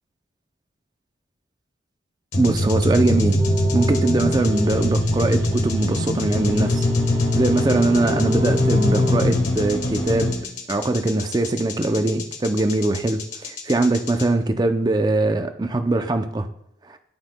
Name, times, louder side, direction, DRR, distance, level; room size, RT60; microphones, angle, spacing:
sound 1, 2.3-14.2, left 1 dB, 85° left, 1.3 m, -23 dB
voice 1, 2.3-3.4 3.7-6.8 7.3-10.4 10.7-16.5, right 2 dB, 20° right, 8 dB, 0.4 m, -21 dB
sound 2, 3.4-9.2, equal, 60° right, 2.7 m, -30 dB
11.5 x 5.7 x 2.2 m, 0.75 s
head